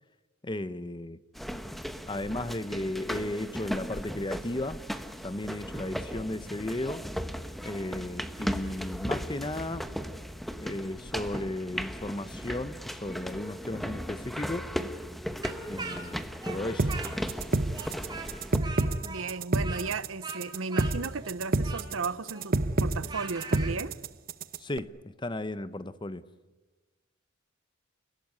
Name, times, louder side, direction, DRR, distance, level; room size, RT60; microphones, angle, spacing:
voice 1, 0.4-1.2 2.1-4.8 5.2-7.1 7.6-9.9 10.6-14.7 15.7-16.9 24.6-26.2, left 1 dB, 25° left, 0.8 m, -35 dB
sound 1, 1.4-18.6, equal, ahead, 1.1 m, -37 dB
Speech, 15.4-17.4 17.7-23.7, right 4 dB, 20° right, 3.4 m, -41 dB
sound 2, 16.8-24.8, right 2 dB, 45° right, 0.9 m, -28 dB
voice 2, 19.1-23.9, right 4 dB, 80° right, 0.8 m, -35 dB
29.5 x 16.5 x 9.6 m
head